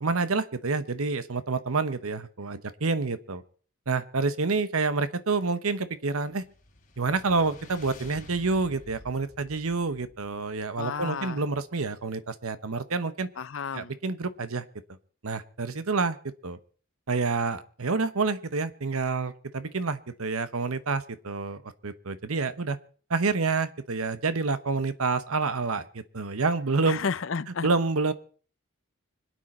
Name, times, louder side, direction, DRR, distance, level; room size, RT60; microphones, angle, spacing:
voice 1, 0.0-3.4 3.9-6.4 7.0-13.3 13.7-14.6 15.2-16.2 16.4-16.6 17.1-22.8 23.1-27.0 27.6-28.1, right 4 dB, 75° right, 1.0 m, -28 dB
sound 1, 6.2-11.6, left 1 dB, 35° left, 3.2 m, -51 dB
voice 2, 10.8-11.4 13.4-13.9 26.9-27.7, left 5 dB, 60° left, 0.6 m, -32 dB
25.5 x 9.2 x 4.3 m
head